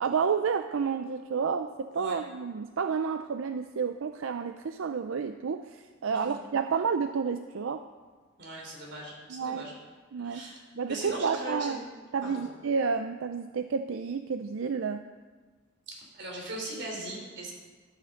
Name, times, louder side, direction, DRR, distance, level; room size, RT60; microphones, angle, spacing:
voice 1, 0.0-7.8 9.3-9.7 10.1-10.4 10.7-11.8 12.1-15.0, right 5 dB, 85° right, 9 dB, 0.5 m, -30 dB
voice 2, 8.4-9.7 10.2-10.6 10.9-11.9 12.2-12.4 15.9-17.5, right 1 dB, 60° right, 0 dB, 3.3 m, -39 dB
12.0 x 8.6 x 6.6 m, 1.4 s
head